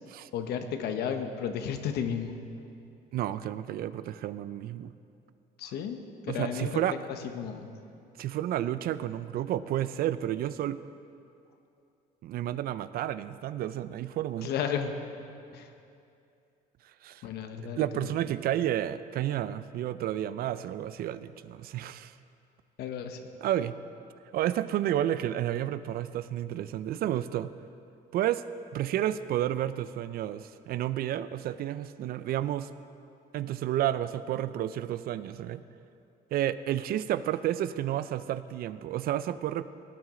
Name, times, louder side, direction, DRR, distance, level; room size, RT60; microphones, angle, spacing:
voice 1, 0.3-2.4 5.6-6.8 7.2-7.7 14.4-14.9 15.5-15.7 17.2-18.1 22.8-23.2, left 7 dB, 75° left, 7 dB, 1.0 m, -33 dB
voice 2, 3.1-4.9 6.3-7.0 8.2-10.8 12.2-14.5 17.0-17.2 17.8-22.1 23.4-23.7 24.3-27.5 28.1-28.4 28.7-32.7 33.3-35.6 36.3-39.6, right 12 dB, 65° right, 14 dB, 0.4 m, -31 dB
17.5 x 9.4 x 3.8 m, 2.6 s
cardioid pair, 110°, 17 cm